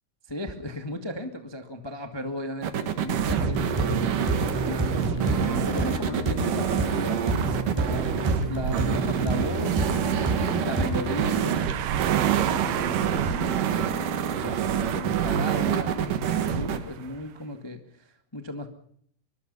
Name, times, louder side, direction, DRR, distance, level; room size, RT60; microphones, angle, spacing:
voice 1, 0.3-4.0 4.6-8.2 8.4-10.2 10.6-13.5 14.3-14.6 14.9-18.7, left 1 dB, 45° left, 6 dB, 0.3 m, -36 dB
sound 1, 2.6-16.8, right 8 dB, 65° right, 3.0 m, -27 dB
sound 2, 3.3-11.3, right 1 dB, 5° right, 6.1 m, -30 dB
sound 3, 7.1-17.2, right 11 dB, 85° right, 3.2 m, -35 dB
24.0 x 22.5 x 5.5 m, 0.63 s
omnidirectional pair, 4.3 m